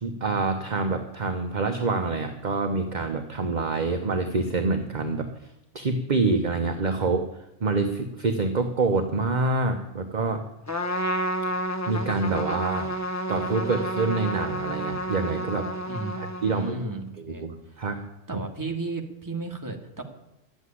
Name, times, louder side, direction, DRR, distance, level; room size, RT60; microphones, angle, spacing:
voice 1, 0.0-5.3 5.7-7.3 7.6-10.4 11.9-12.9 13.3-15.7 16.2-16.9 17.2-18.0 18.3-18.4, right 3 dB, 35° right, 5 dB, 1.0 m, -26 dB
Trumpet, 10.7-16.8, equal, 15° left, 0.7 m, -30 dB
voice 2, 15.9-16.2 16.5-17.9 18.3-20.0, right 3 dB, 15° right, 3 dB, 1.6 m, -34 dB
12.0 x 8.1 x 9.7 m, 0.87 s
omnidirectional pair, 1.4 m